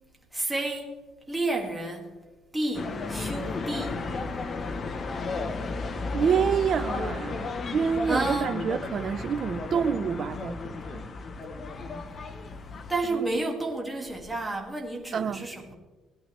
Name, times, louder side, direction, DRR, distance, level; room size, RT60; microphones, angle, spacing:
voice 1, 0.3-0.9 1.3-2.1 2.5-4.0 8.1-8.5 12.9-15.7, right 2 dB, 10° right, 1.9 m, -30 dB
sound 1, 2.7-13.0, left 3 dB, 30° left, 0.9 m, -34 dB
voice 2, 6.1-11.0 13.1-13.2 15.1-15.5, right 7 dB, 40° right, 0.5 m, -28 dB
18.0 x 11.0 x 3.2 m
cardioid pair, 165°, 0 cm